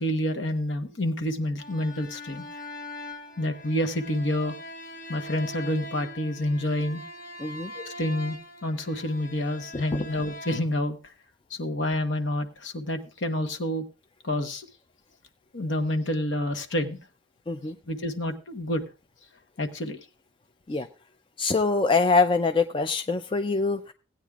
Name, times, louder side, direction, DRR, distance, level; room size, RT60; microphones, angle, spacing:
voice 1, 0.0-2.5 3.4-4.6 5.1-7.0 7.7-11.0 11.5-13.8 14.2-14.7 15.5-17.0 17.9-18.8 19.6-20.0, left 1 dB, 65° left, 6 dB, 1.1 m, -28 dB
sound 1, 1.6-10.6, left 1 dB, 45° left, 1.0 m, -42 dB
voice 2, 7.4-7.7 9.7-9.8 17.5-17.8 20.7-20.9 21.4-23.9, left 4 dB, 25° left, 8 dB, 0.4 m, -24 dB
17.5 x 9.2 x 2.4 m, 0.32 s
head